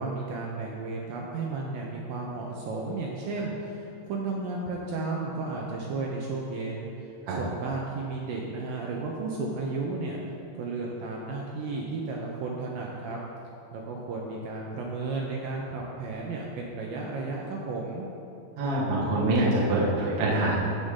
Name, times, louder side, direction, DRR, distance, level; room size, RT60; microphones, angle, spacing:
voice 1, 0.0-6.9 7.3-10.2 10.6-13.2 13.7-18.1, right 3 dB, 85° right, -2 dB, 2.0 m, -33 dB
voice 2, 18.6-20.6, right 2 dB, 65° right, -7 dB, 1.6 m, -25 dB
15.0 x 5.3 x 3.7 m, 2.7 s
omnidirectional pair, 5.1 m